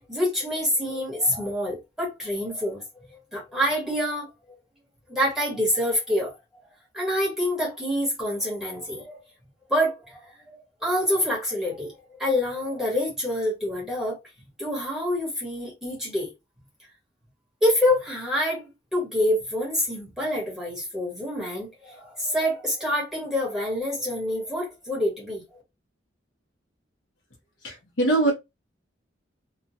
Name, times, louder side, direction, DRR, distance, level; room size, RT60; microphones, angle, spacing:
voice 1, 0.0-2.8 3.1-4.3 5.1-6.3 6.9-9.2 9.7-14.2 14.6-16.3 17.6-25.6, left 1 dB, 5° right, 1.3 m, -26 dB
voice 2, 27.6-28.3, right 2 dB, 85° left, 0.9 m, -22 dB
3.0 x 2.3 x 2.7 m
head